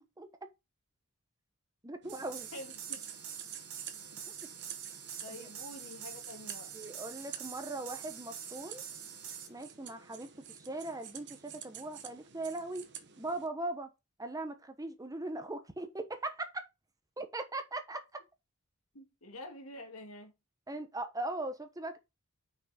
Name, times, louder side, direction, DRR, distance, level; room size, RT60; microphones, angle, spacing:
voice 1, 1.8-2.5 6.7-8.8 9.5-12.9 13.2-13.9 14.2-16.6 17.2-18.0 20.7-22.0, right 2 dB, 15° right, 1.0 m, -39 dB
sound 1, 2.0-13.5, right 9 dB, 55° right, 1.1 m, -50 dB
sound 2, 2.1-9.5, right 8 dB, 90° right, 2.3 m, -46 dB
voice 2, 2.5-3.0 5.2-6.7 18.9-20.3, left 1 dB, 75° left, 2.0 m, -47 dB
6.0 x 5.6 x 5.1 m
head